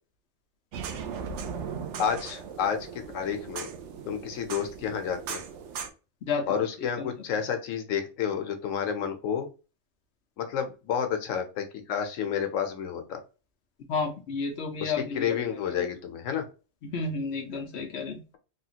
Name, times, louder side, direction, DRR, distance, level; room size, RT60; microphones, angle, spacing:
sound 1, 0.7-5.9, right 6 dB, 70° right, 0.9 m, -38 dB
voice 1, 2.0-2.9 3.1-3.7 4.0-5.4 6.5-9.5 10.4-13.2 14.8-16.4, left 8 dB, 90° left, 6 dB, 1.1 m, -30 dB
voice 2, 6.3-6.6 7.0-7.1 13.9-15.3 15.8-15.9 16.8-18.2, left 4 dB, 60° left, 3 dB, 0.8 m, -31 dB
3.4 x 2.4 x 2.8 m, 0.32 s
omnidirectional pair, 1.3 m